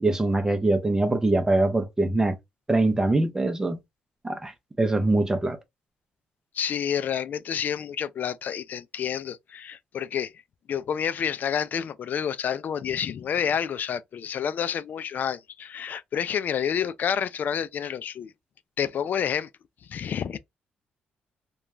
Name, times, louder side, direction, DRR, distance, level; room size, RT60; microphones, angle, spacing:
voice 1, 0.0-2.4 2.7-3.8 4.2-5.6, right 2 dB, 15° right, 0.6 m, -23 dB
voice 2, 6.5-10.3 10.7-18.3 18.8-19.5 19.9-20.4, left 8 dB, 55° left, 0.3 m, -29 dB
2.9 x 2.2 x 2.5 m
cardioid pair, 100°, 4 cm